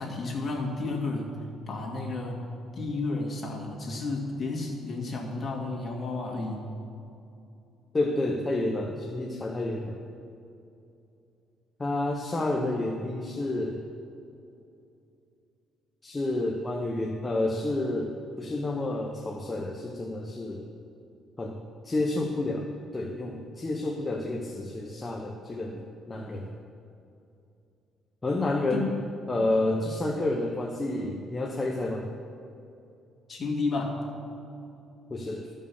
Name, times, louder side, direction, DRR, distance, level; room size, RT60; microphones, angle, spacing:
voice 1, 0.0-1.3 1.7-6.6 28.7-28.9 33.3-34.0, left 3 dB, 35° left, -1 dB, 2.1 m, -32 dB
voice 2, 7.9-10.0 11.8-13.8 16.0-20.7 21.4-21.6 21.8-22.7 22.9-26.5 28.2-28.9 29.3-32.1 35.1-35.5, left 2 dB, 20° left, 1 dB, 0.7 m, -30 dB
12.5 x 5.4 x 7.0 m, 2.7 s
cardioid pair, 125°, 0 cm